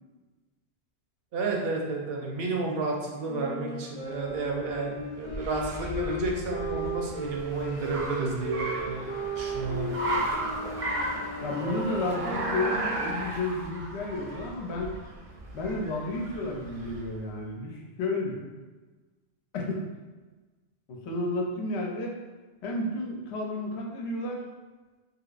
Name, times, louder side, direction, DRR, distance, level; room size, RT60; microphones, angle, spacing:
voice 1, 1.3-9.9, right 3 dB, 70° right, 0 dB, 0.8 m, -31 dB
Wind instrument woodwind instrument, 3.3-13.3, right 1 dB, 50° left, 0.8 m, -36 dB
Car, 4.4-17.2, right 1 dB, 50° right, 0.4 m, -35 dB
voice 2, 11.4-14.9 15.5-18.5 19.5-19.8 20.9-22.2 22.6-24.4, left 2 dB, 85° left, 0 dB, 0.9 m, -32 dB
3.1 x 2.9 x 2.4 m, 1.3 s
omnidirectional pair, 1.1 m